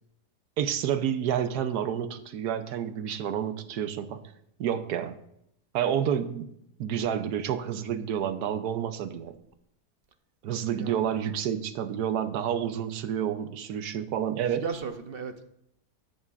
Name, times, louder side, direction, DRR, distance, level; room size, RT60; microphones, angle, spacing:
voice 1, 0.6-4.2 4.6-5.2 5.7-6.5 6.8-9.4 10.4-14.6, right 9 dB, 85° right, 11 dB, 1.3 m, -29 dB
voice 2, 10.7-11.1 14.4-15.4, right 5 dB, 50° right, 8 dB, 0.8 m, -36 dB
13.0 x 10.5 x 2.5 m, 0.76 s
omnidirectional pair, 1.7 m